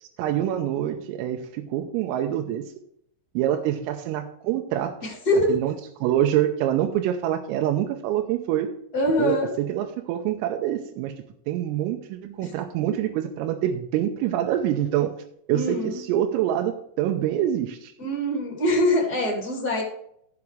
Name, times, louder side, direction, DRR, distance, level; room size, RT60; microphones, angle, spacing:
voice 1, 0.0-2.6 3.3-5.0 5.5-5.7 6.0-8.7 9.2-15.2 15.5-17.9, right 11 dB, 90° right, 3 dB, 3.4 m, -26 dB
voice 2, 8.9-9.5 15.5-16.0 18.0-19.8, left 1 dB, 30° left, -2 dB, 2.0 m, -23 dB
13.5 x 7.2 x 3.2 m, 0.71 s
omnidirectional pair, 6.0 m